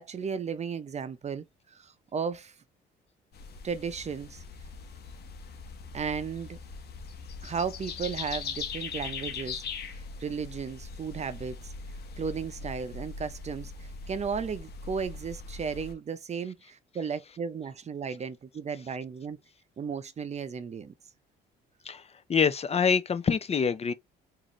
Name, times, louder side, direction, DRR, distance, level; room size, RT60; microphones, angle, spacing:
voice 1, 0.0-1.5 1.7-2.5 3.6-4.4 5.9-6.6 7.4-9.6 10.2-11.7 12.2-13.7 14.1-19.4 19.8-20.9, right 6 dB, 35° right, 0.7 m, -34 dB
sound 1, 3.3-15.9, left 5 dB, 60° left, 1.1 m, -41 dB
voice 2, 21.8-23.9, left 6 dB, 35° left, 0.6 m, -26 dB
3.9 x 2.7 x 3.1 m
cardioid pair, 95°, 19 cm